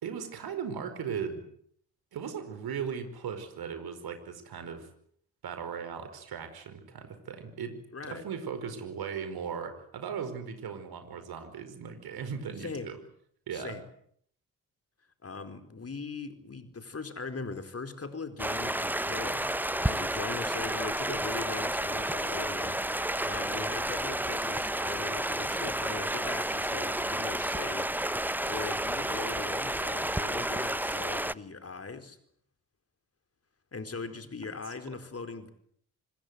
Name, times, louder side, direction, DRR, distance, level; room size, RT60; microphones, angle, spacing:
voice 1, 0.0-1.4 2.1-4.9 5.4-13.0 13.5-13.8, right 7 dB, 65° right, 9 dB, 5.0 m, -38 dB
voice 2, 7.9-8.2 12.6-12.9 13.5-13.8 15.2-27.9 28.4-32.2 33.7-35.5, left 4 dB, 35° left, 8 dB, 4.6 m, -40 dB
Stream, 18.4-31.3, right 1 dB, 5° right, 1.1 m, -31 dB
26.0 x 25.5 x 8.2 m, 0.65 s
hypercardioid pair, 40°, 41 cm